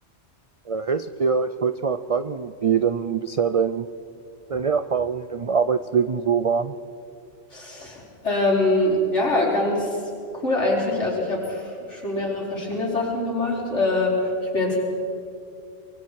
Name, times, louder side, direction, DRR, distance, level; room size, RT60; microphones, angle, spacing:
voice 1, 0.7-3.9 4.5-6.7, right 6 dB, 65° right, 12 dB, 0.3 m, -23 dB
voice 2, 7.5-10.0 10.3-14.8, left 2 dB, 65° left, -4 dB, 5.2 m, -24 dB
24.5 x 23.0 x 4.7 m, 2.6 s
omnidirectional pair, 1.3 m